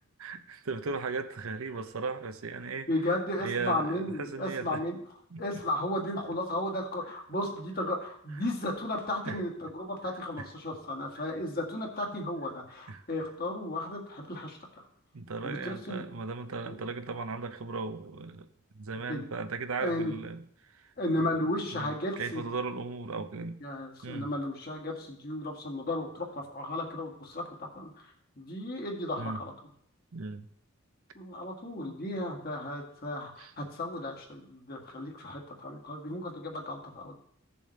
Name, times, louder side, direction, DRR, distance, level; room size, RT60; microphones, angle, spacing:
voice 1, 0.2-2.9 3.4-4.8 5.3-5.4 9.2-9.4 12.9-13.0 15.1-18.5 18.7-23.6 24.0-24.3 29.2-29.4 30.1-30.5 31.9-32.0 33.4-33.5, right 4 dB, 70° right, 9 dB, 0.7 m, -37 dB
voice 2, 2.9-5.0 5.4-14.9 15.4-16.0 16.7-16.8 19.1-19.3 19.8-20.1 21.0-22.4 23.6-29.5 31.1-37.1, left 1 dB, 45° left, 0 dB, 1.8 m, -34 dB
15.5 x 7.1 x 3.2 m, 0.67 s
head